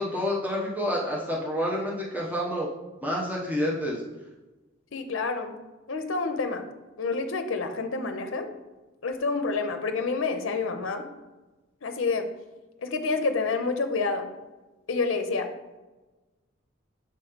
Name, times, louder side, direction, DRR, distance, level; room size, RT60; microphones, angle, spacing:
voice 1, 0.0-2.7 3.0-4.0, equal, 10° right, -4 dB, 0.8 m, -28 dB
voice 2, 4.9-5.6 5.9-6.7 7.0-8.5 9.0-11.1 11.8-12.3 12.8-14.3 14.9-15.5, left 4 dB, 70° left, 6 dB, 0.6 m, -28 dB
6.8 x 3.0 x 5.0 m, 1.1 s
head